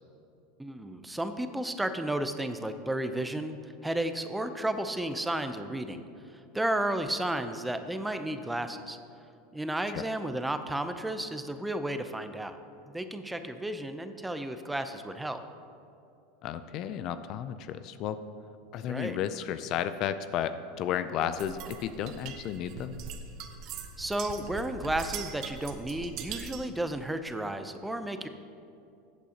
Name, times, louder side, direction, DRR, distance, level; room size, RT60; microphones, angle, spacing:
voice 1, 0.6-6.0 6.3-9.0 9.5-12.6 12.9-15.4 18.9-19.2 24.0-28.3, right 1 dB, 5° right, 9 dB, 0.6 m, -33 dB
voice 2, 16.4-18.2 18.7-23.0, left 9 dB, 50° left, 12 dB, 0.4 m, -33 dB
sound 1, 21.4-26.7, right 6 dB, 50° right, 0.8 m, -41 dB
15.0 x 8.3 x 2.9 m, 2.6 s
hypercardioid pair, 105°, 0 cm